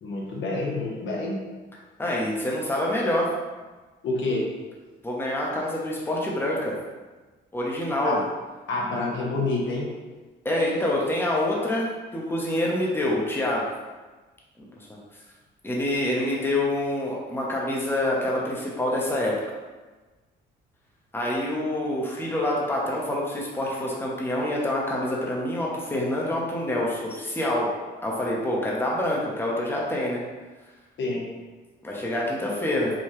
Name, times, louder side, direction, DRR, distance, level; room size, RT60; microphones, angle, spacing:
voice 1, 0.0-1.4 4.0-4.5 8.0-8.2 8.7-9.9 31.0-31.2, left 2 dB, 70° left, -2 dB, 0.9 m, -27 dB
voice 2, 2.0-3.3 5.0-6.7 7.5-8.2 10.4-13.7 14.8-15.0 15.6-19.4 21.1-27.7 28.0-30.2 31.8-32.9, left 1 dB, 10° left, -4 dB, 0.9 m, -26 dB
4.7 x 2.3 x 3.0 m, 1.3 s
cardioid pair, 90°, 20 cm